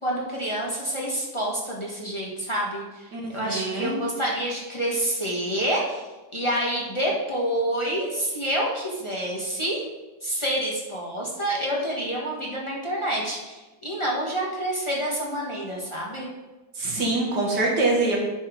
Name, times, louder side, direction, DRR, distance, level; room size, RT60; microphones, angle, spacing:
voice 1, 0.0-6.0 6.3-9.8 10.2-16.3, right 1 dB, 15° left, -4 dB, 1.6 m, -28 dB
voice 2, 3.1-4.0 16.8-18.2, right 2 dB, 75° right, -2 dB, 2.5 m, -24 dB
10.0 x 5.7 x 5.2 m, 1.1 s
omnidirectional pair, 1.8 m